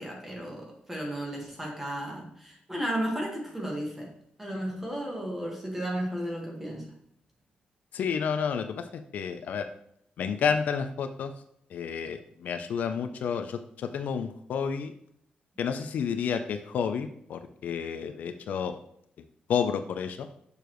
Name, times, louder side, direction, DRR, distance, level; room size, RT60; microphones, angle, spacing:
voice 1, 0.0-4.1 4.4-6.9, equal, 10° right, -1 dB, 1.6 m, -34 dB
voice 2, 7.9-9.7 10.2-11.3 11.7-14.9 15.6-18.7 19.5-20.3, left 7 dB, 70° left, 8 dB, 0.5 m, -30 dB
7.0 x 6.6 x 3.1 m, 0.70 s
wide cardioid pair, 180°, 3 cm